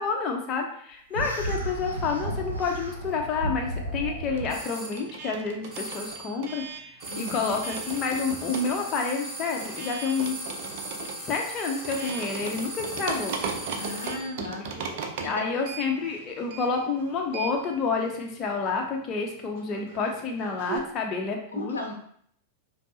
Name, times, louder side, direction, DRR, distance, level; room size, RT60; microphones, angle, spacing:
voice 1, 0.0-6.6 7.2-10.4 11.2-13.4 14.7-21.8, left 4 dB, 30° left, 1 dB, 0.6 m, -29 dB
sound 1, 1.1-4.6, right 1 dB, 85° right, 0.7 m, -33 dB
sound 2, 2.0-3.2 3.5-20.8, right 6 dB, 50° right, 0.5 m, -39 dB
sound 3, 4.5-5.0 5.7-6.3 7.0-14.4, right 1 dB, 15° right, 1.4 m, -38 dB
voice 2, 7.1-7.5 13.8-14.6 15.2-15.7 21.5-21.9, left 3 dB, 75° left, 1 dB, 0.6 m, -36 dB
5.1 x 2.0 x 2.8 m, 0.63 s
figure-of-eight pair, 90°, 0 cm